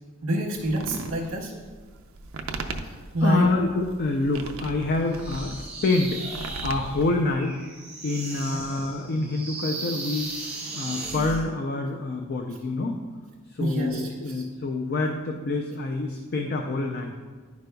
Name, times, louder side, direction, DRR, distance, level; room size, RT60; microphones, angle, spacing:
voice 1, 0.2-1.5 3.1-3.5 8.5-8.6 13.6-14.4, right 1 dB, 85° right, -4 dB, 0.9 m, -27 dB
sound 1, 0.6-7.3, right 3 dB, 65° right, 0.5 m, -38 dB
voice 2, 3.2-7.6 8.0-10.3 10.7-13.0 13.5-17.1, left 2 dB, 45° left, 3 dB, 0.4 m, -27 dB
sound 2, 5.1-11.5, right 2 dB, 5° right, 1.0 m, -36 dB
10.5 x 5.2 x 2.2 m, 1.4 s
head